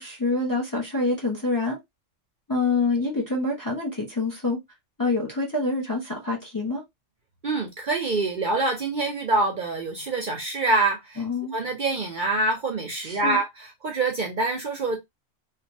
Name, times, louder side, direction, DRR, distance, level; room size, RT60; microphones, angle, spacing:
voice 1, 0.0-1.8 2.5-4.6 5.0-6.8 11.2-11.5 13.0-13.4, left 3 dB, 20° left, 0.8 m, -26 dB
voice 2, 7.4-11.2 11.5-15.0, right 2 dB, 50° right, 0.7 m, -25 dB
3.1 x 2.3 x 2.6 m
omnidirectional pair, 1.3 m